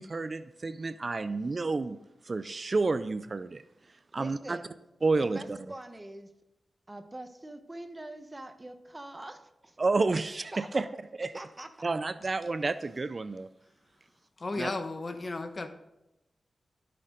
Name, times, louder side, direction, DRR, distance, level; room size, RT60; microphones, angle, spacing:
voice 1, 0.0-2.0 2.2-3.6 4.1-4.6 5.0-5.6 9.8-10.8 11.2-11.3 11.8-13.5 14.6-14.7, right 3 dB, 45° right, 14 dB, 0.4 m, -30 dB
voice 2, 4.2-4.7 5.1-6.3 6.9-9.8 10.5-10.9 11.3-11.9, right 1 dB, 25° right, 8 dB, 1.0 m, -44 dB
voice 3, 14.4-15.7, left 2 dB, 45° left, 8 dB, 1.0 m, -34 dB
15.0 x 6.6 x 3.8 m, 0.92 s
cardioid pair, 65°, 0 cm